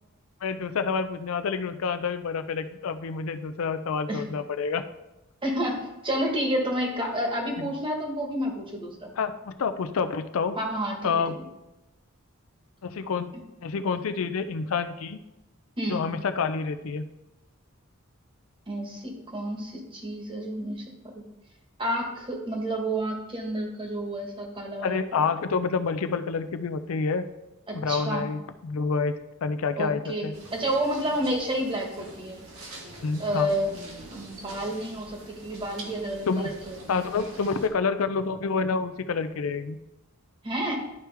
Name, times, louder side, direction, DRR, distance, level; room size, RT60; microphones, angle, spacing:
voice 1, 0.4-4.8 7.6-7.7 9.2-10.6 11.0-11.4 12.8-13.3 13.6-15.2 15.9-17.1 24.8-27.3 27.7-29.1 29.4-30.3 33.0-33.5 36.3-36.5 36.9-39.8, left 5 dB, 70° left, 9 dB, 0.4 m, -28 dB
voice 2, 5.4-9.1 10.6-11.4 15.8-16.0 18.7-20.8 21.1-21.2 21.8-25.3 27.7-28.3 29.8-32.4 33.2-33.7 34.1-37.1 40.4-40.8, right 1 dB, 25° right, 1 dB, 1.3 m, -30 dB
sound 1, 30.3-37.7, right 2 dB, 85° right, 1.6 m, -45 dB
11.0 x 4.6 x 3.4 m, 0.94 s
head